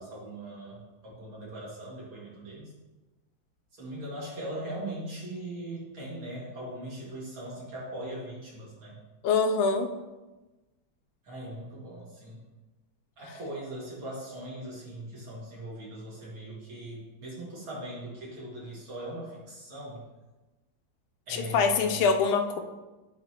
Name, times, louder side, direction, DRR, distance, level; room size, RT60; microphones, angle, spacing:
voice 1, 0.0-2.7 3.7-9.0 11.2-12.4 13.2-20.0 21.3-22.2, right 1 dB, 85° right, -6 dB, 2.8 m, -40 dB
voice 2, 9.2-9.9 21.3-22.6, left 5 dB, 90° left, 6 dB, 1.4 m, -24 dB
9.6 x 4.2 x 2.8 m, 1.1 s
omnidirectional pair, 2.2 m